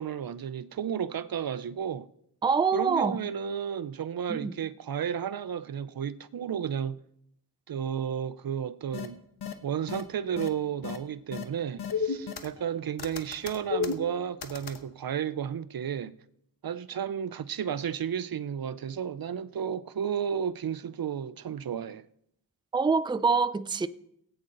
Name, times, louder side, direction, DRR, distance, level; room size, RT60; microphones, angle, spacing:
voice 1, 0.0-2.1 2.7-7.0 7.7-9.2 9.6-16.1 16.6-22.0, right 8 dB, 65° right, 0.6 m, -32 dB
voice 2, 2.4-3.2 4.3-4.5 22.7-23.9, right 5 dB, 10° right, 0.4 m, -25 dB
sound 1, 8.9-9.1 9.4-9.5 9.9-10.0 10.4-10.5 10.8-11.0 11.3-11.4 11.8-12.7 13.0-14.8, left 6 dB, 90° left, 1.1 m, -32 dB
17.5 x 8.8 x 3.9 m
wide cardioid pair, 70°, 38 cm